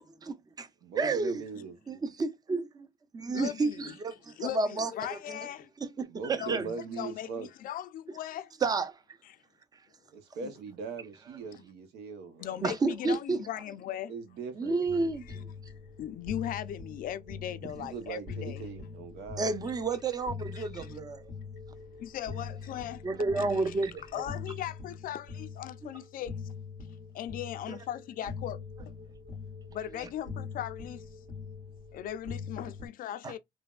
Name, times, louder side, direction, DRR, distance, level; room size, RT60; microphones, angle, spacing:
voice 1, 0.2-0.7 1.0-1.4 1.9-2.6 3.1-5.4 5.8-6.6 8.6-8.9 12.6-13.4 14.6-15.5 17.6-17.7 19.4-21.2 23.0-24.2 27.7-27.8 33.2-33.3, right 3 dB, 20° right, 0.5 m, -31 dB
voice 2, 0.8-1.8 6.1-7.5 10.1-12.6 14.1-15.1 17.8-19.5, right 4 dB, 80° right, 0.9 m, -40 dB
voice 3, 3.3-3.9 4.4-5.7 6.4-6.6 7.0-8.5 9.3-9.4 12.4-14.1 15.3-15.4 16.0-18.6 20.6-20.9 22.0-23.0 23.4-23.7 24.1-26.3 27.1-28.6 29.7-31.0 31.9-33.4, left 11 dB, 55° left, 0.4 m, -38 dB
sound 1, 14.8-32.9, left 5 dB, 60° right, 1.6 m, -43 dB
3.2 x 2.1 x 2.3 m
cardioid pair, 110°, 17 cm